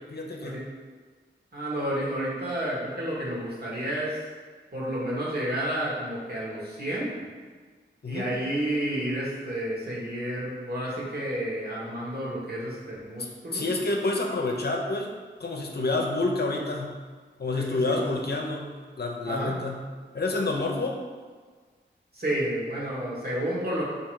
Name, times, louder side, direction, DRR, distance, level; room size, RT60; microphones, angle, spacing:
voice 1, 0.1-0.6 8.0-8.3 13.5-15.1 15.4-17.0 17.4-19.8 20.1-21.0, left 2 dB, 55° left, 1 dB, 0.6 m, -28 dB
voice 2, 1.5-4.3 4.7-7.2 8.1-13.7 15.8-16.0 17.5-18.1 19.2-19.5 22.1-23.8, right 1 dB, 55° right, -5 dB, 1.4 m, -31 dB
3.5 x 2.8 x 4.6 m, 1.5 s
cardioid pair, 50°, 20 cm